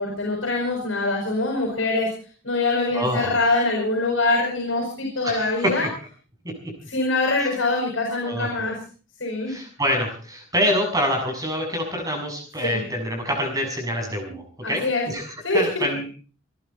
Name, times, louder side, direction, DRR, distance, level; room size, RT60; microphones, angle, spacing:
voice 1, 0.0-2.1 2.4-5.8 6.9-8.8 9.2-9.6 12.6-12.8 14.6-15.1 15.4-15.6, left 2 dB, 75° left, 0 dB, 6.6 m, -24 dB
voice 2, 2.9-3.4 5.2-5.9 6.4-6.7 7.4-7.5 8.3-8.7 9.5-16.0, equal, 20° right, 3 dB, 6.8 m, -26 dB
27.5 x 11.5 x 4.4 m, 0.39 s
head